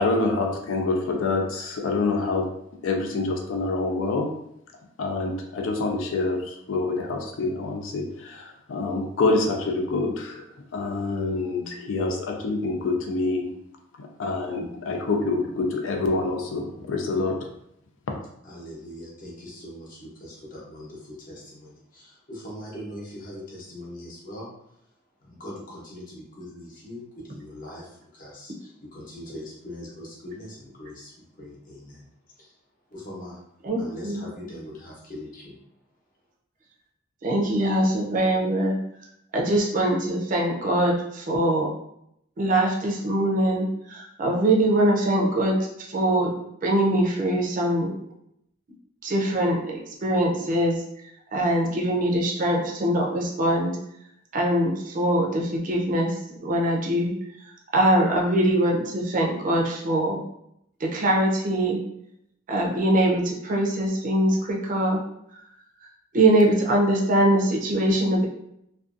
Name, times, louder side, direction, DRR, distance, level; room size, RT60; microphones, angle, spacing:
voice 1, 0.0-2.5 2.8-4.3 5.0-10.4 10.7-13.5 14.0-17.4, left 3 dB, 80° left, 2 dB, 0.4 m, -26 dB
voice 2, 18.4-24.5 25.2-32.1 32.4-32.6 32.9-33.4 33.8-35.6, left 1 dB, 45° left, -4 dB, 0.8 m, -41 dB
voice 3, 37.2-38.8 39.3-41.7 42.4-46.3 46.6-48.0 49.0-50.8 51.3-53.8 54.3-57.1 57.7-60.2 60.8-61.8 62.5-65.0 65.8-65.9 66.1-68.3, right 1 dB, 45° right, -1 dB, 0.5 m, -22 dB
2.5 x 2.2 x 2.5 m, 0.76 s
head